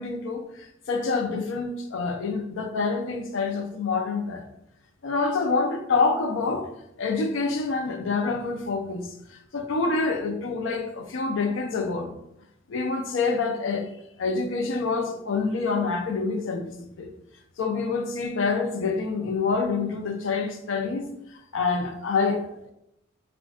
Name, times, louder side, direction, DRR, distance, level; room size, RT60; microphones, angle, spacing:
voice 1, 0.0-4.5 5.0-6.7 7.0-12.1 12.7-13.9 14.2-17.1 17.6-22.7, left 4 dB, 65° left, 0.4 m, -27 dB
2.4 x 2.1 x 3.4 m
head